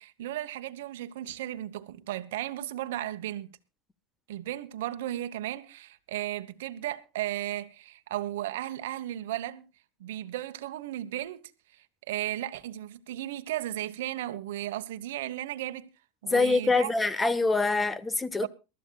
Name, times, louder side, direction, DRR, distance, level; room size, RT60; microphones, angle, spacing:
voice 1, 0.0-3.5 4.3-9.6 10.0-11.4 11.7-15.9 16.2-16.9 18.4-18.5, right 13 dB, 80° right, 1.1 m, -35 dB
voice 2, 16.3-18.5, left 3 dB, 15° left, 1.2 m, -25 dB
23.0 x 13.5 x 2.3 m
hypercardioid pair, 105°, 0 cm